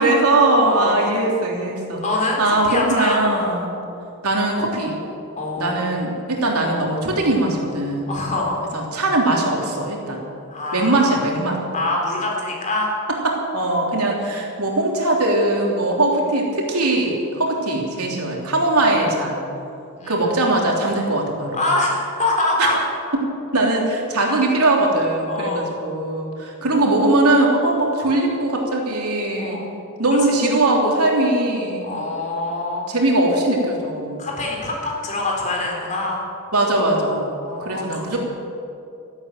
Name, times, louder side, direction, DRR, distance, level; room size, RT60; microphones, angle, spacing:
voice 1, 0.0-2.0 2.4-3.7 4.2-5.0 5.6-8.1 8.7-10.2 10.7-11.6 13.1-19.4 20.1-21.6 22.6-22.7 23.1-23.2 23.5-29.6 30.0-31.9 32.9-34.2 36.5-37.3 37.6-38.2, right 2 dB, 90° right, -1 dB, 3.3 m, -20 dB
voice 2, 0.6-1.0 2.0-3.3 5.4-5.8 8.1-8.6 10.5-11.1 11.7-12.9 20.0-20.3 21.5-22.8 24.3-24.4 25.3-25.7 29.4-29.7 30.1-30.2 31.8-32.9 34.2-36.2 37.4-38.0, left 2 dB, 35° left, -1 dB, 3.9 m, -24 dB
13.0 x 12.0 x 9.1 m, 2.6 s
head